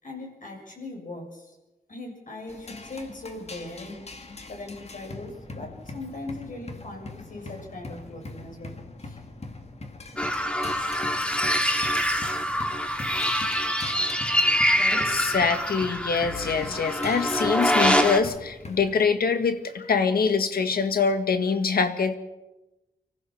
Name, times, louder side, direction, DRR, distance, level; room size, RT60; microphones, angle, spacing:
voice 1, 0.0-1.6 1.9-4.0 4.5-8.8 9.0-9.2 14.7-15.2, left 2 dB, 60° left, 1 dB, 6.8 m, -39 dB
sound 1, 2.5-19.0, left 2 dB, 45° left, 2.2 m, -42 dB
sound 2, 10.2-18.2, equal, 5° left, 2.1 m, -25 dB
voice 2, 14.9-22.1, left 5 dB, 75° left, 9 dB, 1.8 m, -24 dB
25.0 x 15.0 x 7.3 m, 1.0 s
cardioid pair, 75°, 16 cm